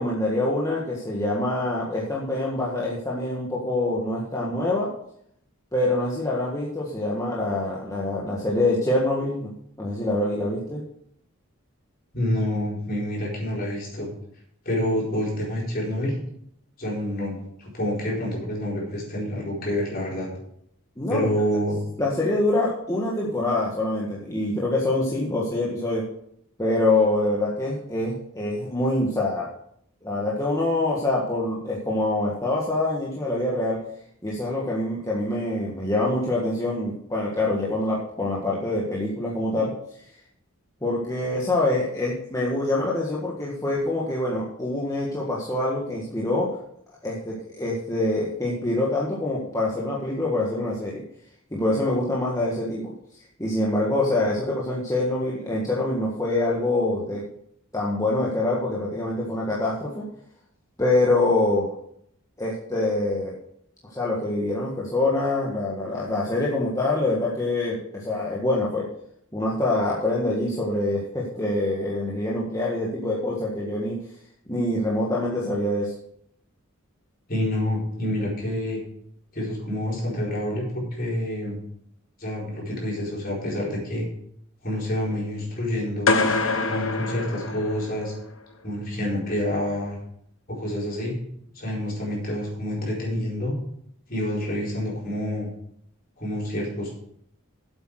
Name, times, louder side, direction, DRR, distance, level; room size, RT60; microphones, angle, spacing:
voice 1, 0.0-4.9 5.7-9.5 9.8-10.8 21.0-21.3 22.0-26.1 26.6-29.5 30.0-33.8 34.2-39.7 40.8-46.5 47.0-51.0 51.5-52.9 53.4-57.2 57.7-60.1 60.8-61.7 62.4-63.3 63.9-68.9 69.3-74.0 74.5-75.9, left 2 dB, 15° left, -5 dB, 1.6 m, -25 dB
voice 2, 12.1-14.1 14.6-16.1 16.8-20.3 21.1-21.8 77.3-78.8 79.3-81.6 82.2-84.1 84.6-86.1 86.6-88.1 88.6-90.0 90.5-91.2 91.5-93.5 94.1-95.5 96.2-97.0, left 1 dB, 45° left, -3 dB, 4.5 m, -28 dB
sound 1, 86.1-88.2, left 3 dB, 65° left, 1.2 m, -25 dB
8.3 x 8.2 x 6.4 m, 0.71 s
head